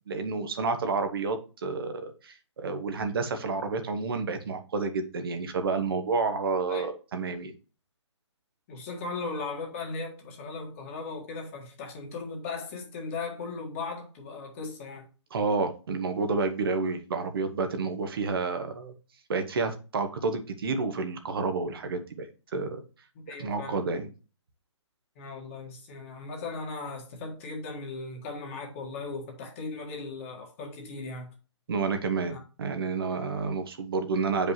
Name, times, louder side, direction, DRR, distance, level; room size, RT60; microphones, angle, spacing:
voice 1, 0.1-7.5 15.3-18.9 19.3-22.3 22.5-22.8 23.3-24.1 31.7-34.5, right 4 dB, 50° right, 1.1 m, -30 dB
voice 2, 8.7-15.1 23.1-23.8 25.2-31.3 32.3-32.4, left 3 dB, 25° left, 1.6 m, -37 dB
7.8 x 5.2 x 2.8 m
hypercardioid pair, 165°, 15 cm